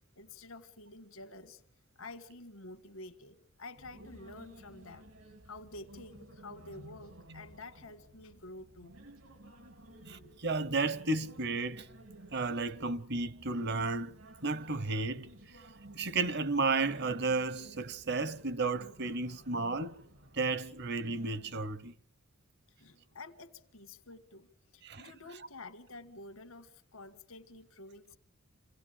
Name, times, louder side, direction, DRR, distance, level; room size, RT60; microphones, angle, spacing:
voice 1, 0.2-1.6 1.9-5.1 5.4-8.9 22.8-24.5 24.7-28.2, left 2 dB, 85° left, 1.6 m, -49 dB
sound 1, 3.8-21.5, right 1 dB, 80° right, 2.9 m, -54 dB
voice 2, 10.1-11.9 12.3-15.3 16.0-20.0 20.3-21.9 24.8-25.1, right 3 dB, 55° right, 1.0 m, -33 dB
28.0 x 17.0 x 8.8 m
head